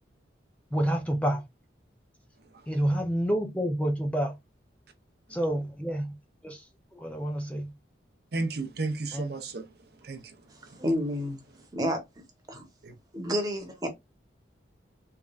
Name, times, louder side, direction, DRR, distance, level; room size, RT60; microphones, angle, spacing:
voice 1, 0.7-1.4 2.7-4.3 5.3-6.1 6.4-6.6 6.9-7.7 9.1-9.3, right 1 dB, 5° left, 0.5 m, -28 dB
voice 2, 8.3-9.7 10.0-10.3 12.8-12.9, right 3 dB, 55° right, 0.6 m, -32 dB
voice 3, 10.8-11.4 11.7-12.6 13.1-13.9, equal, 20° right, 1.1 m, -30 dB
3.5 x 3.2 x 2.4 m
head